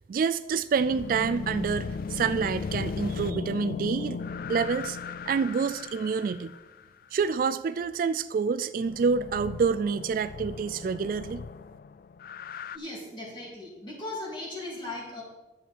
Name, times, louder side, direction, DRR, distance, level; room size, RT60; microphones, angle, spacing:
voice 1, 0.1-4.2 4.5-5.0 5.3-6.5 7.1-11.4, right 5 dB, 50° right, 12 dB, 0.3 m, -27 dB
sound 1, 0.8-6.8 8.8-12.8, left 5 dB, 55° left, 0.3 m, -37 dB
voice 2, 12.7-15.2, left 2 dB, 25° left, -4 dB, 3.0 m, -38 dB
10.5 x 7.3 x 4.5 m, 1.1 s
head